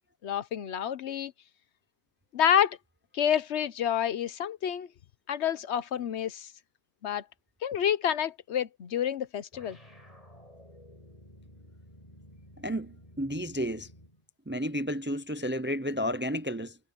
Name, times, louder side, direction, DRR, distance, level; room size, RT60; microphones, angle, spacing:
voice 1, 0.2-1.3 2.3-2.8 3.1-4.9 5.3-6.5 7.0-7.2 7.6-9.8, left 9 dB, 75° left, 1.1 m, -28 dB
sound 1, 9.5-14.2, equal, 30° left, 8.3 m, -53 dB
voice 2, 12.6-13.9 14.5-16.8, equal, 15° right, 0.4 m, -32 dB
omnidirectional pair, 1.2 m